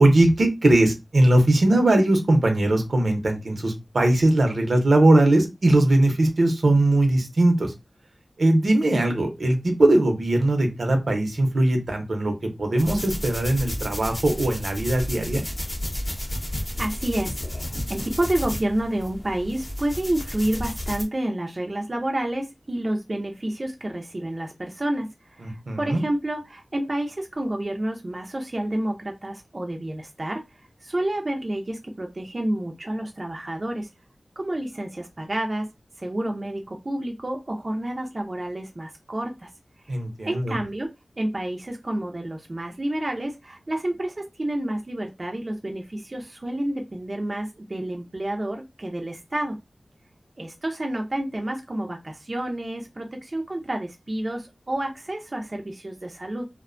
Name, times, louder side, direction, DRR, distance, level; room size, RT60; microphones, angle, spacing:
voice 1, 0.0-7.7 8.4-12.3 12.6-15.4 25.4-26.0 39.9-40.5, right 1 dB, 80° right, 4 dB, 0.7 m, -20 dB
sound 1, 12.8-21.0, left 1 dB, 30° left, 0.7 m, -32 dB
voice 2, 16.8-33.9 34.4-35.7 36.0-39.5 39.9-40.0 40.2-40.9 41.2-49.6 50.4-56.4, right 1 dB, 45° right, 2 dB, 0.4 m, -29 dB
2.5 x 2.1 x 2.5 m, 0.23 s
wide cardioid pair, 50°, 0 cm